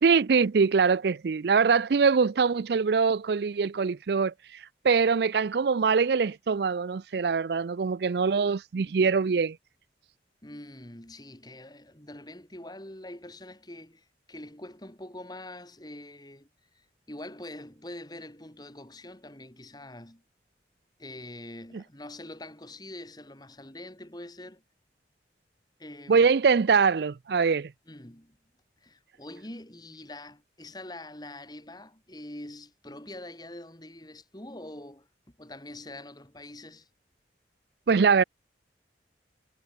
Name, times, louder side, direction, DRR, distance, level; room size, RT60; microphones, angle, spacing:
voice 1, 0.0-4.3 4.8-9.6 21.7-21.8 26.1-27.7 37.9-38.2, right 5 dB, 60° right, 0.4 m, -23 dB
voice 2, 10.4-16.5 16.7-20.2 21.0-24.6 25.8-26.3 27.9-28.4 28.8-35.1 35.4-36.9, left 1 dB, 20° left, 3.1 m, -44 dB
head